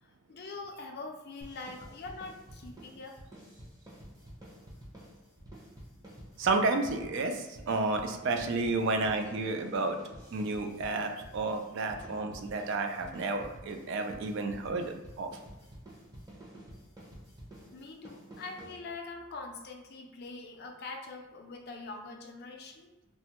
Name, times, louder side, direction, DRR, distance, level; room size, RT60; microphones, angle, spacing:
voice 1, 0.0-3.2 17.7-22.9, left 3 dB, 50° left, 2 dB, 0.4 m, -43 dB
sound 1, 1.4-19.2, equal, 15° right, 0.6 m, -50 dB
voice 2, 6.4-10.0 10.3-15.3, right 3 dB, 60° right, 5 dB, 0.3 m, -31 dB
3.3 x 2.1 x 2.9 m, 1.1 s
head